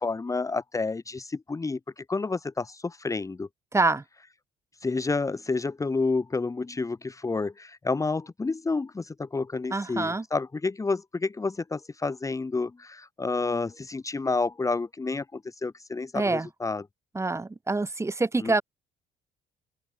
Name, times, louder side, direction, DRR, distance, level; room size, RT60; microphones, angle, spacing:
voice 1, 0.0-3.5 4.8-16.8 18.4-18.6, left 3 dB, 20° left, 2.1 m, -30 dB
voice 2, 3.7-4.0 9.7-10.3 16.1-16.5 17.1-18.6, right 3 dB, 15° right, 5.9 m, -26 dB
open air
cardioid pair, 110°, 17 cm